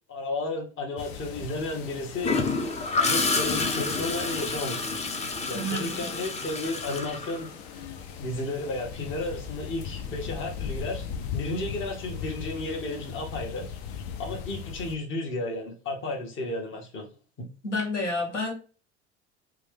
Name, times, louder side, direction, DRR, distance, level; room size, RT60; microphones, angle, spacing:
voice 1, 0.1-2.4 2.9-5.1 5.5-7.5 8.2-11.1 11.3-13.6 14.2-17.1, left 2 dB, 35° left, 1 dB, 1.1 m, -33 dB
sound 1, 1.0-15.0, left 7 dB, 65° left, 0.6 m, -39 dB
Gurgling / Toilet flush, 2.2-8.0 10.0-10.2, left 3 dB, 20° left, 0.5 m, -29 dB
voice 2, 5.5-6.1 17.6-18.5, left 1 dB, 85° left, 0 dB, 1.1 m, -30 dB
3.0 x 2.3 x 3.4 m, 0.36 s
hypercardioid pair, 75°, 35 cm